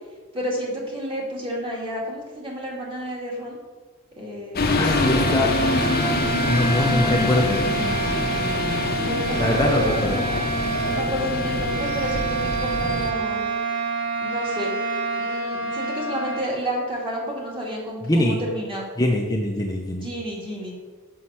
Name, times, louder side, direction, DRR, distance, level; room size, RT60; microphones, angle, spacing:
voice 1, 0.3-3.6 4.2-5.6 9.0-10.4 10.9-13.5 14.2-14.7 15.2-18.9 19.9-20.7, equal, 25° right, -3 dB, 2.2 m, -31 dB
sound 1, 4.6-13.1, left 2 dB, 45° left, 0.8 m, -25 dB
sound 2, 4.6-16.5, right 3 dB, 80° right, 2.1 m, -27 dB
voice 2, 4.7-5.5 6.5-7.6 9.4-10.2 18.1-18.4 19.0-20.0, left 1 dB, 15° left, 0 dB, 0.7 m, -22 dB
6.4 x 6.2 x 5.6 m, 1.3 s
head